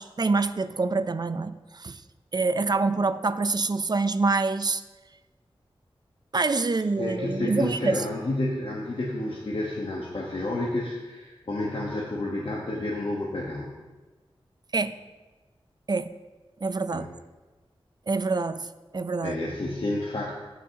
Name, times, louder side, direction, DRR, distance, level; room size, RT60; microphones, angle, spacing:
voice 1, 0.0-2.0 2.3-4.8 6.3-8.0 14.7-15.0 15.9-16.1 16.6-17.1 18.1-18.7 18.9-19.4, right 3 dB, 45° right, 13 dB, 0.5 m, -26 dB
voice 2, 7.0-13.8 16.9-17.1 19.2-20.3, left 1 dB, 60° left, -3 dB, 1.2 m, -30 dB
15.5 x 5.8 x 2.9 m, 1.2 s
wide cardioid pair, 50°, 10 cm